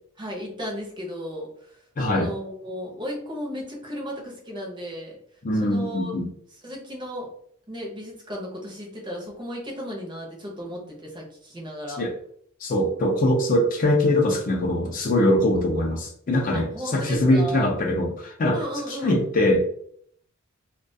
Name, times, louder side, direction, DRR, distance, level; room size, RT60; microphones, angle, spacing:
voice 1, 0.2-5.2 5.6-6.1 6.6-7.3 7.7-12.0 16.5-17.7 18.5-19.2, equal, 20° right, -2 dB, 0.6 m, -35 dB
voice 2, 2.0-2.3 5.4-6.3 12.0-12.1 12.6-19.7, left 1 dB, 40° left, 1 dB, 0.4 m, -22 dB
2.3 x 2.2 x 2.5 m, 0.65 s
head